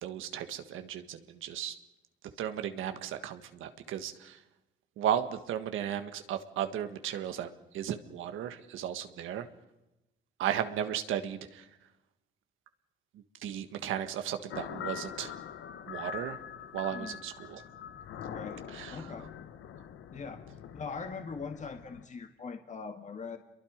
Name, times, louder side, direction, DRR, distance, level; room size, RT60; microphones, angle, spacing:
voice 1, 0.0-1.7 2.4-4.4 5.0-7.5 7.7-9.5 10.4-11.6 13.4-15.3 15.9-16.4 16.7-17.6 18.7-19.0, right 10 dB, 85° right, 9 dB, 1.6 m, -35 dB
sound 1, 14.5-22.1, left 9 dB, 85° left, 1.2 m, -44 dB
voice 2, 18.2-18.6 18.9-19.3 20.1-20.4 20.7-23.4, left 5 dB, 35° left, 6 dB, 1.9 m, -41 dB
28.0 x 23.0 x 5.1 m, 0.96 s
cardioid pair, 90°, 20 cm